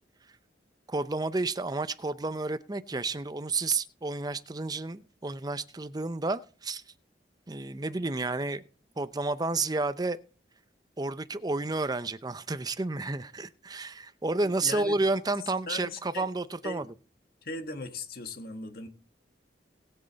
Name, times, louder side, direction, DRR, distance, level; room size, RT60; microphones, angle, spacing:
voice 1, 0.9-6.8 7.5-8.6 9.0-10.2 11.0-16.8, right 3 dB, 20° right, 0.6 m, -31 dB
voice 2, 14.4-15.0 15.7-16.3 16.6-16.9 17.4-18.9, left 2 dB, 55° left, 1.7 m, -38 dB
19.5 x 7.8 x 4.1 m
head